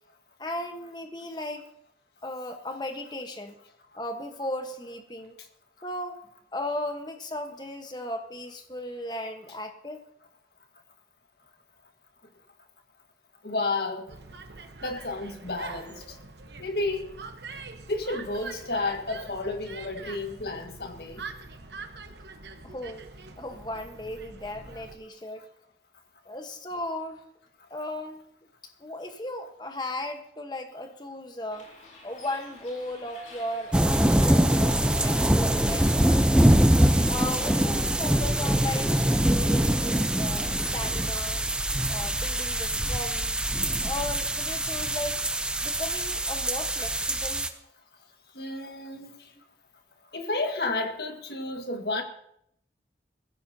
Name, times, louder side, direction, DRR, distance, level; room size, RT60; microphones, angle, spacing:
voice 1, 0.4-1.7 2.2-3.6 3.9-5.3 5.8-6.2 6.5-10.0 22.6-23.0 23.4-25.5 26.2-27.2 27.7-28.2 28.8-31.7 32.0-36.4 37.0-41.4 41.9-43.4 43.8-45.2 45.6-47.5, left 1 dB, 25° left, 5 dB, 1.2 m, -36 dB
voice 2, 13.4-14.1 14.8-16.2 16.6-17.1 17.9-21.2 48.3-49.2 50.1-52.0, left 2 dB, 65° left, 4 dB, 1.7 m, -31 dB
sound 1, 14.1-25.0, right 3 dB, 75° right, 1.1 m, -44 dB
Bus, 31.5-42.0, left 1 dB, 45° left, 3.8 m, -46 dB
sound 2, 33.7-47.5, right 1 dB, 5° right, 0.6 m, -24 dB
21.5 x 15.5 x 2.8 m, 0.73 s
head